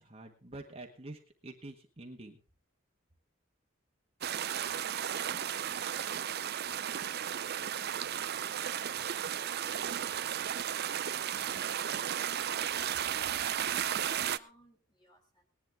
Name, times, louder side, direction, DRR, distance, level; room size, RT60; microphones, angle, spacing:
voice 1, 0.0-2.4, right 2 dB, 30° right, 2 dB, 1.6 m, -47 dB
sound 1, 4.2-14.4, right 9 dB, 50° right, 0.6 m, -34 dB
voice 2, 4.3-10.9 11.2-15.5, equal, 20° left, 2 dB, 3.7 m, -61 dB
19.0 x 11.0 x 3.6 m, 0.33 s
head